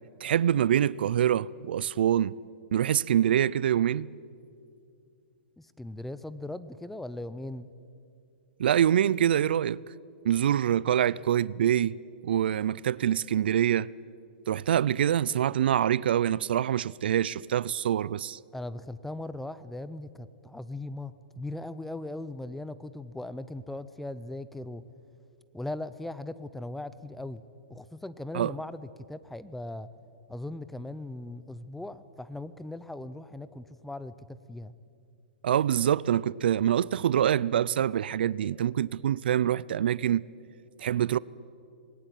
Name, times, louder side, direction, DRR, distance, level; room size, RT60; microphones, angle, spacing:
voice 1, 0.2-2.3 2.7-4.1 8.6-9.8 10.2-12.0 12.2-13.9 14.5-18.4 28.3-28.5 35.4-40.2 40.8-41.2, right 10 dB, 75° right, 0.5 m, -25 dB
voice 2, 5.6-7.7 18.5-24.8 25.5-27.4 27.7-29.9 30.3-34.7, left 2 dB, 5° left, 0.5 m, -39 dB
20.0 x 18.5 x 9.1 m
hypercardioid pair, 160°, 6 cm